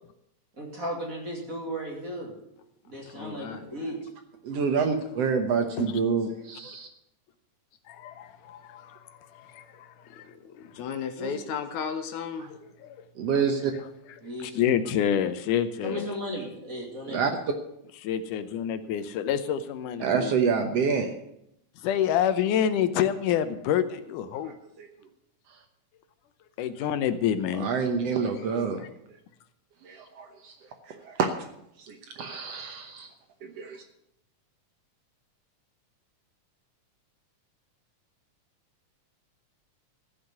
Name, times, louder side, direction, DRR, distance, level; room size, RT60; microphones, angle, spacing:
voice 1, 0.6-2.3 2.8-4.0 11.2-11.3 14.2-14.6 15.8-17.4, equal, 30° right, -1 dB, 2.7 m, -35 dB
voice 2, 3.0-3.8 5.1-5.2 5.8-5.9 10.2-12.5, left 6 dB, 75° left, 9 dB, 2.0 m, -35 dB
voice 3, 4.4-6.9 13.2-13.7 17.1-17.3 20.0-21.1 24.8-24.9 27.6-28.8 29.9-30.3 31.0-31.3 31.9-33.1 33.6-33.8, right 6 dB, 65° right, 6 dB, 1.8 m, -27 dB
voice 4, 7.9-9.0 9.5-9.9 10.1-10.2 14.4-16.1 18.0-20.3 21.8-24.5 26.6-27.7, left 9 dB, 90° left, 11 dB, 2.4 m, -27 dB
15.0 x 5.8 x 9.4 m, 0.79 s
omnidirectional pair, 3.6 m